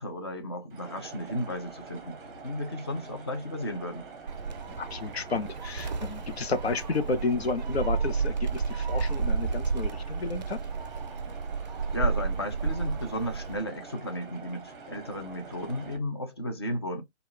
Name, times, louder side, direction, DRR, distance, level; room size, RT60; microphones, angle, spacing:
voice 1, 0.0-2.2 2.4-4.0 11.9-17.0, left 1 dB, 25° left, 0.5 m, -34 dB
sound 1, 0.7-16.0, right 4 dB, 15° right, 0.9 m, -46 dB
Gull seagull, 4.3-13.6, right 5 dB, 45° right, 0.4 m, -31 dB
voice 2, 4.7-10.6, left 4 dB, 65° left, 0.7 m, -31 dB
3.5 x 2.3 x 3.2 m
figure-of-eight pair, 135°, 33 cm